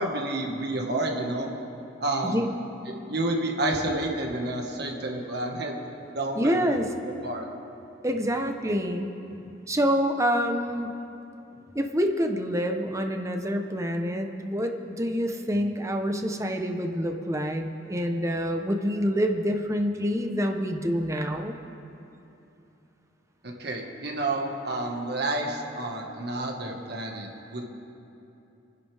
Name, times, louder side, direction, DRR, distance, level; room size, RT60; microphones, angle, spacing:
voice 1, 0.0-1.5 2.0-2.5 2.9-5.7 6.1-6.5 7.1-7.5 23.4-27.6, right 2 dB, 55° right, 1 dB, 1.7 m, -30 dB
voice 2, 6.3-6.9 8.0-9.1 9.7-10.9 11.7-21.6, equal, 15° right, 4 dB, 1.0 m, -27 dB
28.5 x 11.0 x 3.5 m, 2.8 s
head